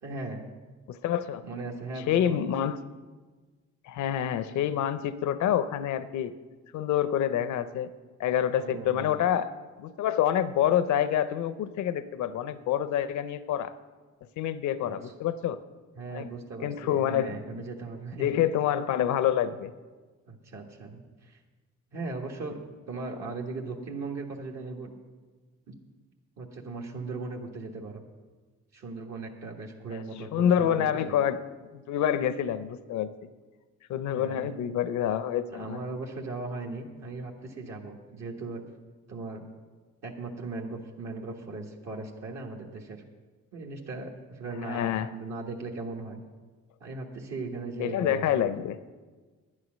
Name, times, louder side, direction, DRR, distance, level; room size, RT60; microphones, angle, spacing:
voice 1, 0.0-0.5 1.4-2.4 8.5-9.1 14.8-15.1 16.0-18.4 20.3-21.4 21.9-22.6 22.9-24.9 25.7-25.8 26.4-28.0 28.7-31.2 34.1-34.6 35.5-38.6 39.1-39.5 40.0-43.0 43.5-46.2 46.8-48.5, right 3 dB, 60° right, 0 dB, 1.5 m, -38 dB
voice 2, 0.9-1.4 2.1-2.8 3.9-6.3 6.7-7.9 8.2-9.5 9.8-13.7 14.4-15.6 16.1-16.3 16.6-17.4 18.2-19.7 30.3-31.4 31.9-33.1 33.9-35.8 44.6-45.1 47.8-48.8, left 10 dB, 70° left, 13 dB, 0.6 m, -27 dB
10.5 x 9.8 x 6.3 m, 1.3 s
cardioid pair, 90°, 30 cm